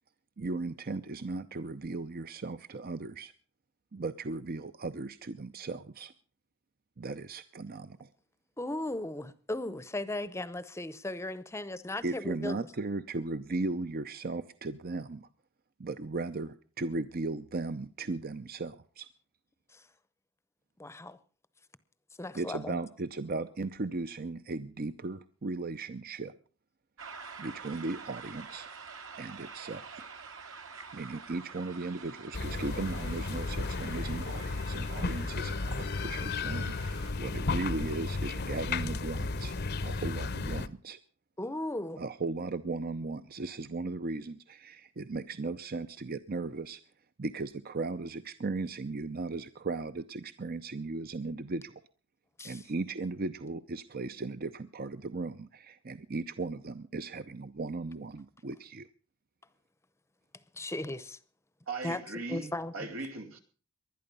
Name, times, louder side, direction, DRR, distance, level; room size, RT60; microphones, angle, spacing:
voice 1, 0.4-3.3 3.9-6.1 7.0-8.1 12.0-15.3 15.8-19.1 22.3-26.3 27.4-28.7 29.2-30.1 30.9-39.6 39.8-41.0 42.0-46.8 47.2-51.8 52.4-58.9, right 3 dB, 50° right, 0.7 m, -37 dB
voice 2, 8.6-12.6 19.7-19.9 20.8-21.2 22.2-22.8 41.4-42.0 52.4-52.6 60.5-61.2 61.8-62.0 62.3-62.9, left 1 dB, 15° left, 0.8 m, -36 dB
sound 1, 27.0-37.1, right 5 dB, 70° right, 2.4 m, -47 dB
sound 2, 32.3-40.7, left 3 dB, 50° left, 0.8 m, -34 dB
voice 3, 61.7-63.4, right 3 dB, 90° right, 2.8 m, -39 dB
20.0 x 11.5 x 5.5 m
head